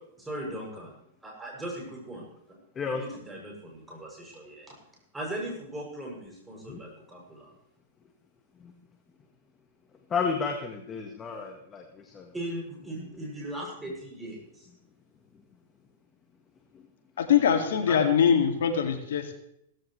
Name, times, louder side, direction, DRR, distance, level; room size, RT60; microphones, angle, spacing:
voice 1, 0.2-0.9 1.2-2.3 3.0-4.7 5.1-7.5 12.3-14.6, right 1 dB, 5° right, -2 dB, 7.4 m, -38 dB
voice 2, 10.1-12.3 13.0-13.1 17.7-18.1, left 5 dB, 20° left, 4 dB, 1.6 m, -32 dB
voice 3, 17.2-19.3, left 7 dB, 75° left, 5 dB, 2.4 m, -23 dB
16.5 x 15.5 x 3.3 m, 0.76 s
hypercardioid pair, 135°, 0 cm